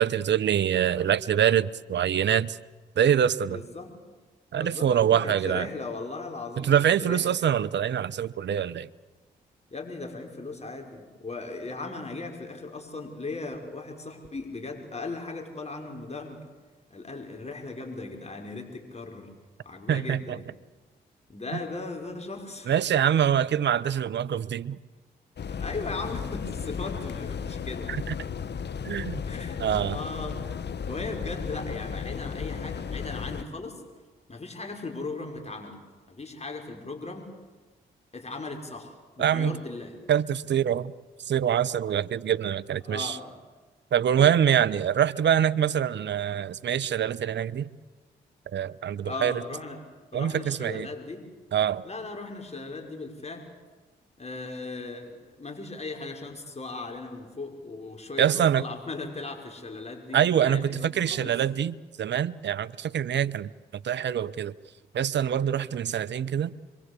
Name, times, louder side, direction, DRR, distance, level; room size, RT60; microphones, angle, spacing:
voice 1, 0.0-2.6 3.0-3.6 4.5-5.7 6.6-8.9 19.9-20.4 21.5-21.6 22.7-24.8 27.9-28.1 28.8-29.2 29.6-30.0 39.2-39.6 40.1-40.9 41.3-43.2 43.9-47.7 48.5-49.4 50.1-50.9 51.5-51.8 58.2-58.6 60.1-63.5 63.8-64.5 64.9-66.5, right 9 dB, 60° right, 16 dB, 0.9 m, -25 dB
voice 2, 3.5-3.9 4.5-6.7 7.0-7.3 9.7-16.5 16.9-19.3 19.6-20.5 21.3-22.7 25.5-27.9 29.2-30.4 30.9-33.8 34.3-35.8 36.1-37.3 38.1-40.0 42.9-43.4 44.2-44.3 49.0-49.9 50.1-51.3 51.8-53.5 54.2-61.4, left 3 dB, 30° left, 3 dB, 5.9 m, -38 dB
sound 1, 25.4-33.4, left 6 dB, 55° left, 1.3 m, -34 dB
26.0 x 23.5 x 8.4 m, 1.3 s
hypercardioid pair, 40°, 21 cm